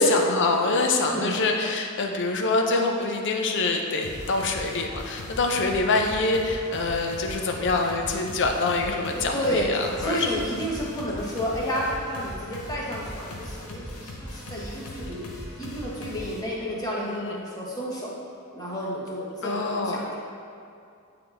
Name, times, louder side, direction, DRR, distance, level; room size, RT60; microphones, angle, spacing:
voice 1, 0.0-10.3 17.0-17.4 19.4-20.1, left 3 dB, 55° left, 3 dB, 0.6 m, -25 dB
voice 2, 1.1-1.4 9.3-9.7 10.0-15.2 15.6-18.1 18.5-20.1, equal, 15° left, -5 dB, 1.2 m, -30 dB
sound 1, 4.0-16.4, left 1 dB, 85° left, 0.9 m, -39 dB
8.7 x 3.8 x 3.4 m, 2.4 s
head